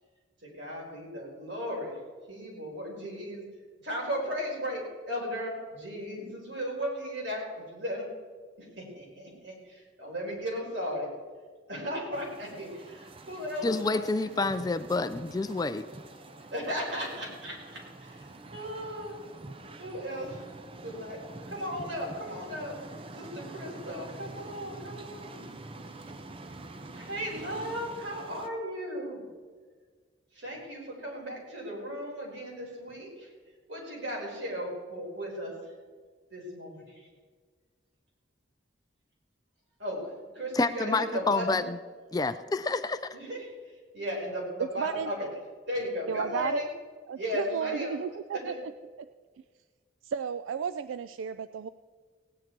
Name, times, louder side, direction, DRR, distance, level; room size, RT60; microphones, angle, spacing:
voice 1, 0.4-2.0 2.3-3.4 3.8-8.1 8.6-11.1 11.7-14.5 16.4-19.1 19.8-20.5 20.8-21.2 21.5-22.8 23.1-25.4 25.9-26.1 26.9-29.2 30.3-33.3 33.7-35.7 36.3-37.1 39.8-40.0 40.3-41.6 43.1-45.3 45.7-46.7 47.1-48.0 48.5-48.6, equal, 65° right, -3 dB, 4.4 m, -36 dB
sound 1, 12.1-28.5, right 2 dB, 30° right, 0.6 m, -46 dB
voice 2, 13.6-15.8 40.5-41.8 42.1-43.0, left 3 dB, 20° left, 11 dB, 0.3 m, -28 dB
voice 3, 44.8-45.1 46.1-46.6 47.1-48.7 49.0-49.1 50.0-51.7, right 7 dB, 90° right, 13 dB, 0.4 m, -33 dB
17.0 x 9.9 x 4.5 m, 1.5 s
head